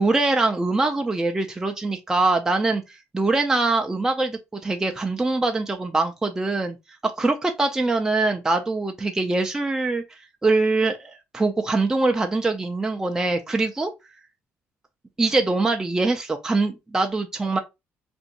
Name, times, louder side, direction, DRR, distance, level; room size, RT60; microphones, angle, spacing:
voice 1, 0.0-6.8 7.0-13.9 15.2-17.6, right 3 dB, 10° right, 0.4 m, -23 dB
2.7 x 2.6 x 4.0 m
cardioid pair, 125°, 5 cm